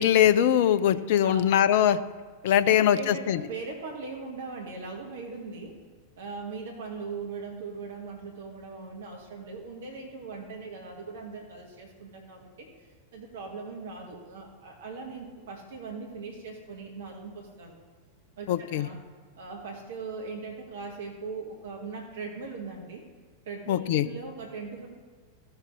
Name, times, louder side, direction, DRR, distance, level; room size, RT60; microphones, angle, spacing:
voice 1, 0.0-2.0 2.4-3.4 18.5-18.9 23.7-24.0, left 10 dB, 50° left, 15 dB, 0.5 m, -22 dB
voice 2, 2.7-5.8 6.2-17.8 18.4-19.0 19.4-23.0 23.4-24.9, right 4 dB, 60° right, 1 dB, 1.3 m, -40 dB
15.0 x 6.8 x 3.4 m, 1.5 s
figure-of-eight pair, 90°, 0 cm